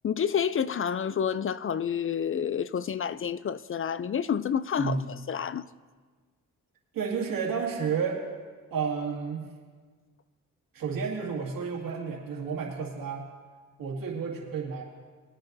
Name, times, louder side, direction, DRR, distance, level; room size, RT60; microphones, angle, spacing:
voice 1, 0.0-5.0 5.3-5.6, left 8 dB, 40° left, 0.4 m, -29 dB
voice 2, 6.9-8.2 8.7-9.4 10.7-13.2 13.8-14.8, right 5 dB, 85° right, 2.2 m, -31 dB
21.5 x 9.8 x 2.6 m
cardioid pair, 60°, 33 cm